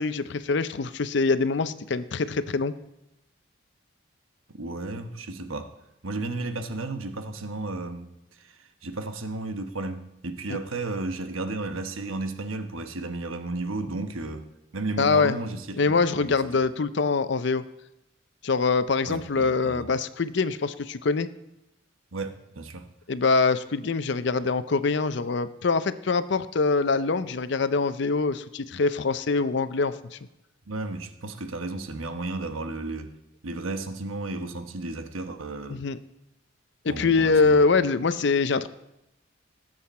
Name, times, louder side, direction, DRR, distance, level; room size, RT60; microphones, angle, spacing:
voice 1, 0.0-2.7 10.5-10.6 15.0-15.4 15.8-17.6 18.4-21.3 23.1-30.2 35.7-36.0 36.8-38.7, left 4 dB, 60° left, 14 dB, 0.5 m, -24 dB
voice 2, 4.5-5.7 6.0-8.1 8.4-14.5 14.7-16.6 19.1-19.9 22.1-22.9 30.7-33.1 33.4-35.8 36.9-37.6, right 2 dB, 85° right, 7 dB, 1.1 m, -33 dB
18.5 x 7.8 x 4.3 m, 0.89 s
head